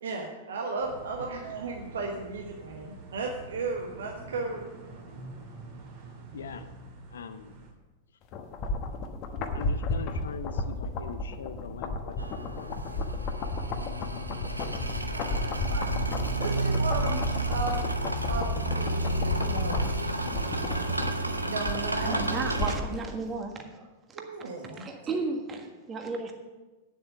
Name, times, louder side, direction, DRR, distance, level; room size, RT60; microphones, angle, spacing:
voice 1, 0.0-4.6 15.1-17.9 18.3-19.9 21.2-22.2 24.1-24.9, right 3 dB, 65° right, 1 dB, 1.2 m, -35 dB
sound 1, 0.8-7.7, right 3 dB, 45° right, 2.6 m, -46 dB
voice 2, 6.3-6.7 7.1-7.6 9.5-13.0 22.1-22.3, left 6 dB, 65° left, 10 dB, 0.6 m, -42 dB
sound 2, 8.3-23.0 23.3-23.4, left 2 dB, 35° left, 1.1 m, -33 dB
sound 3, 12.2-22.8, right 1 dB, 85° right, 0.8 m, -31 dB
voice 3, 22.0-23.9 24.7-26.3, right 4 dB, 20° right, 4 dB, 1.5 m, -34 dB
9.3 x 7.6 x 6.8 m, 1.2 s
figure-of-eight pair, 95°, 0 cm